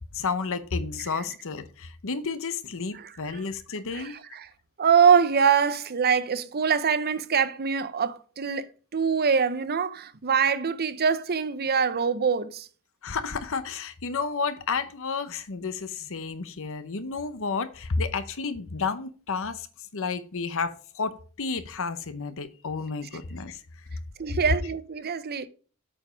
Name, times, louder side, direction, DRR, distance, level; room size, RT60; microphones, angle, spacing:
voice 1, 0.1-4.1 13.0-19.7 19.9-23.6, left 4 dB, 65° left, 0.9 m, -31 dB
voice 2, 3.9-4.5 4.8-12.7 24.2-25.5, right 6 dB, 45° right, 0.7 m, -24 dB
8.6 x 5.3 x 5.1 m
head